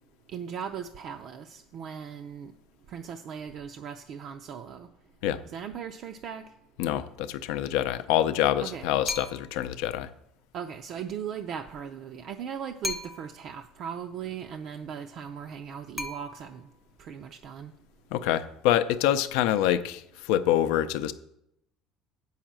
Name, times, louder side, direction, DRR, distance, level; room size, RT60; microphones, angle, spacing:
voice 1, 0.3-2.5 2.9-4.9 5.4-6.4 8.6-8.9 10.5-16.7 17.0-17.7, right 8 dB, 50° right, 5 dB, 0.5 m, -38 dB
voice 2, 6.8-10.1 18.1-21.1, left 11 dB, 80° left, 11 dB, 0.5 m, -26 dB
sound 1, 9.1-9.7 12.8-13.5 16.0-16.8, left 2 dB, ahead, 0.6 m, -36 dB
7.8 x 5.7 x 7.4 m, 0.79 s
cardioid pair, 140°, 0 cm